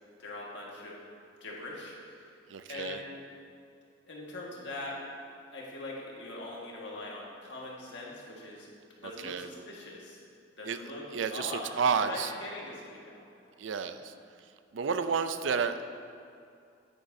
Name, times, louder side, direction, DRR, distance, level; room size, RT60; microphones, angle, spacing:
voice 1, 0.2-1.0 1.4-2.3 2.7-3.2 4.1-5.0 5.5-8.7 9.0-10.2 10.6-11.0 11.3-11.7 12.1-13.3, left 2 dB, 70° left, -4 dB, 1.7 m, -42 dB
voice 2, 2.5-3.0 9.0-9.5 10.7-10.8 11.1-12.3 13.6-14.1 14.7-15.8, right 6 dB, 80° right, 10 dB, 0.5 m, -31 dB
10.0 x 9.8 x 2.7 m, 2.4 s
head